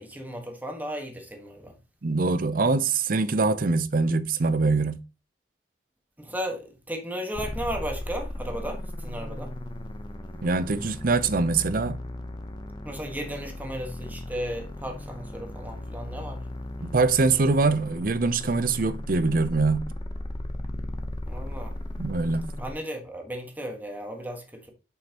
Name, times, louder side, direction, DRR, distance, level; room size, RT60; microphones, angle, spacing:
voice 1, 0.0-1.8 6.2-9.5 12.8-16.4 21.2-21.7 22.6-24.7, equal, 10° right, 1.4 m, -35 dB
voice 2, 2.0-5.0 10.4-12.0 16.8-19.9 22.0-22.5, right 3 dB, 55° right, 0.6 m, -23 dB
sound 1, 7.3-22.7, left 1 dB, 25° left, 0.9 m, -36 dB
7.4 x 5.6 x 2.9 m
head